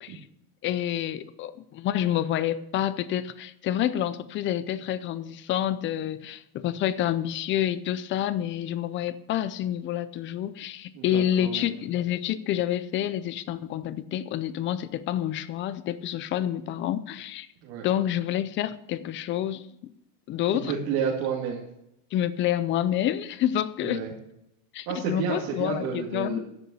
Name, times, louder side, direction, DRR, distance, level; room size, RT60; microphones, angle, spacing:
voice 1, 0.6-17.5 17.8-19.9 20.3-20.7 22.1-24.0 24.7-26.4, left 11 dB, 30° left, 15 dB, 0.5 m, -28 dB
voice 2, 10.9-11.7 17.6-17.9 20.7-21.6 23.8-24.1 24.9-26.4, right 7 dB, 65° right, -4 dB, 2.5 m, -30 dB
10.5 x 6.6 x 8.5 m, 0.83 s
cardioid pair, 165°, 40 cm